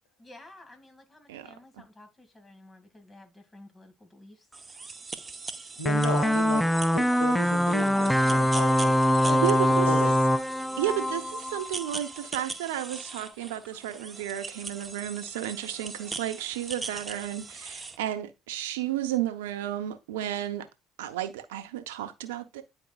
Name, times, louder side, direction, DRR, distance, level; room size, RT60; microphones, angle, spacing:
voice 1, 0.2-4.5 4.8-4.9 7.9-8.6, left 2 dB, 25° left, 2.1 m, -50 dB
sound 1, 4.5-18.0, right 4 dB, 25° right, 0.9 m, -41 dB
voice 2, 5.8-6.6 6.9-8.9 9.2-10.2, left 2 dB, 85° left, 1.5 m, -35 dB
sound 2, 5.9-12.0, equal, ahead, 0.3 m, -23 dB
voice 3, 9.4-10.1 10.8-20.7 21.0-22.6, right 12 dB, 85° right, 0.7 m, -32 dB
10.0 x 4.5 x 2.3 m
hypercardioid pair, 60°, 0 cm